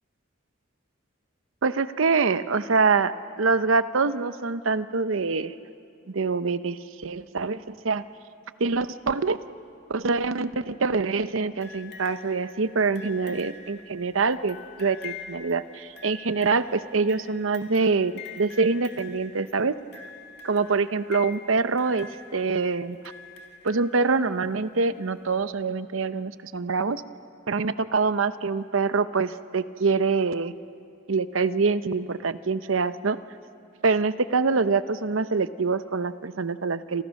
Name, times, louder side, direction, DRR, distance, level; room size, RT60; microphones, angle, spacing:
voice 1, 1.6-5.5 6.1-8.0 8.6-9.4 9.9-19.8 20.4-23.0 23.6-27.0 27.5-30.5 31.1-33.2 33.8-37.0, right 4 dB, 85° right, 13 dB, 0.8 m, -25 dB
sound 1, 11.6-24.4 25.4-25.5, left 5 dB, 55° left, 2.1 m, -45 dB
29.0 x 26.0 x 6.4 m, 2.5 s
head